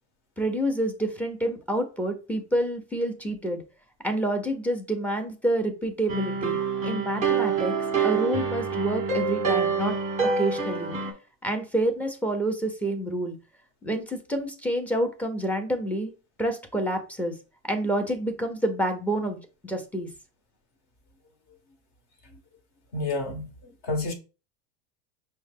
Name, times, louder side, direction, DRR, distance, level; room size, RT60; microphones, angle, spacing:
voice 1, 0.4-3.6 4.0-6.6 6.8-7.7 8.0-9.9 10.4-10.9 11.4-13.4 13.8-16.1 16.4-17.3 17.6-19.4 19.6-20.1, right 1 dB, 5° left, 0.6 m, -28 dB
sound 1, 6.1-11.1, right 5 dB, 15° right, 1.0 m, -26 dB
voice 2, 22.9-23.5 23.8-24.1, left 2 dB, 40° left, 1.2 m, -29 dB
5.3 x 2.2 x 3.4 m
supercardioid pair, 120°, 41 cm